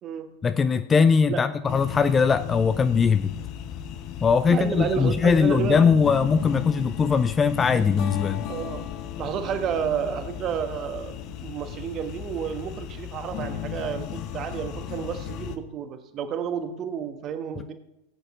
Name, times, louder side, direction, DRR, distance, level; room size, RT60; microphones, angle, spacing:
voice 1, 0.4-3.4 4.2-8.5, left 5 dB, 20° left, 12 dB, 0.5 m, -21 dB
sound 1, 1.7-15.6, left 10 dB, 40° left, 0.9 m, -35 dB
voice 2, 4.5-5.8 8.5-8.8 9.2-11.1 11.4-17.7, right 8 dB, 30° right, 8 dB, 1.4 m, -30 dB
18.5 x 8.9 x 3.7 m, 0.91 s
figure-of-eight pair, 90°, 0 cm